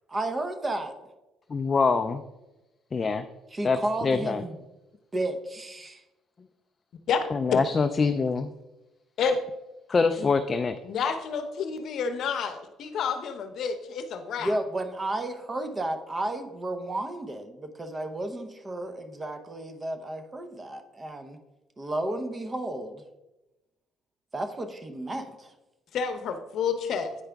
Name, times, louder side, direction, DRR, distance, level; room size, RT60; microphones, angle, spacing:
voice 1, 0.1-0.9 3.5-4.6 5.1-6.0 14.4-21.4 21.8-23.0 24.3-25.5, right 1 dB, 20° right, 7 dB, 0.7 m, -32 dB
voice 2, 1.5-2.2 2.9-3.3 3.6-4.4 7.3-8.5 9.9-10.8, left 4 dB, 30° left, 8 dB, 0.3 m, -24 dB
voice 3, 7.1-7.6 9.2-9.4 10.2-10.3 10.8-14.6 25.9-27.2, left 6 dB, 60° left, 8 dB, 0.7 m, -29 dB
9.0 x 4.8 x 3.4 m, 1.0 s
cardioid pair, 125°, 0 cm